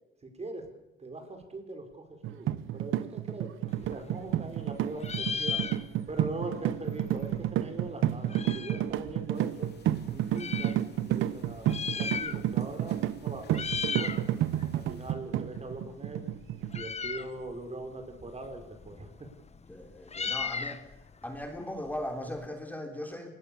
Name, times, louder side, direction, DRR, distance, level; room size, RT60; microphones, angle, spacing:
voice 1, 0.2-0.7 1.0-5.6 6.1-9.7 10.1-10.8 11.0-14.3 14.7-16.2 16.7-19.3, right 2 dB, 30° right, 6 dB, 5.4 m, -41 dB
sound 1, 2.2-16.9, right 12 dB, 85° right, 0.9 m, -31 dB
Meow, 3.7-4.7 5.0-6.2 6.5-6.6 6.8-8.9 9.6-10.8 11.5-12.7 13.0-13.2 13.5-14.2 14.6-22.5, left 6 dB, 35° left, 1.4 m, -37 dB
sound 2, 9.3-15.1, left 5 dB, 55° left, 3.4 m, -55 dB
voice 2, 19.7-20.9 21.2-23.3, left 1 dB, 10° left, 4 dB, 3.6 m, -38 dB
26.0 x 20.5 x 7.1 m, 0.86 s
cardioid pair, 90°, 20 cm